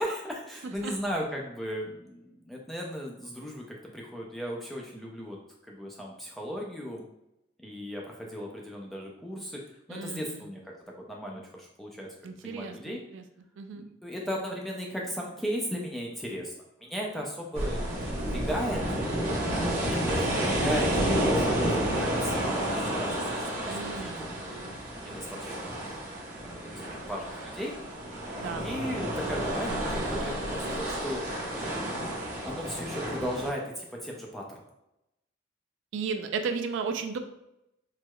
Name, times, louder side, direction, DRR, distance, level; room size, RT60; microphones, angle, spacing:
voice 1, 0.0-5.4 5.7-7.0 7.6-9.6 9.9-13.0 13.7-16.5 16.8-18.8 19.8-24.8 25.0-25.8 26.4-27.8 28.6-31.3 31.8-32.0 32.4-34.6, equal, ahead, -2 dB, 0.4 m, -36 dB
voice 2, 9.9-10.5 12.2-13.2 13.6-13.8 23.7-24.3 28.4-28.6 35.9-37.2, right 5 dB, 75° right, 8 dB, 0.3 m, -34 dB
sound 1, 17.5-33.5, right 1 dB, 35° right, 0.8 m, -30 dB
4.5 x 2.0 x 2.2 m, 0.86 s
head